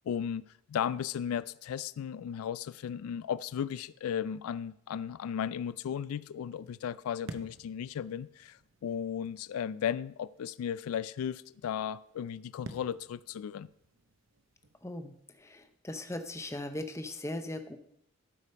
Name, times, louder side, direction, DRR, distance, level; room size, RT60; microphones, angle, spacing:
voice 1, 0.1-13.7, left 8 dB, 85° left, 0.3 m, -35 dB
sound 1, 6.5-15.8, right 2 dB, 60° right, 0.8 m, -53 dB
voice 2, 14.8-17.8, left 1 dB, 15° left, 0.6 m, -39 dB
12.0 x 5.0 x 5.5 m
head